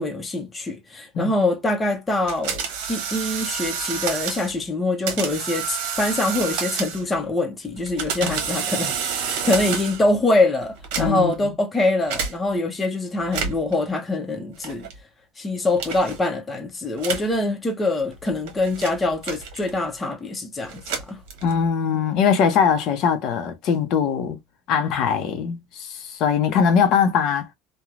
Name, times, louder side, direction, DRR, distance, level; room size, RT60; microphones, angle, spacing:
voice 1, 0.0-14.9 15.4-21.2, left 2 dB, 15° left, 0.8 m, -24 dB
sound 1, 2.3-4.5 5.1-7.2 7.8-10.1 10.8-11.4 12.1-12.3 13.2-13.7 14.6-15.0 15.8-16.2 17.0-17.3 18.1-19.9 20.6-21.7, right 7 dB, 75° right, 1.1 m, -29 dB
voice 2, 11.0-11.3 21.4-24.4 24.7-27.5, left 7 dB, 55° left, 0.7 m, -21 dB
3.1 x 2.2 x 2.4 m
cardioid pair, 140°, 0 cm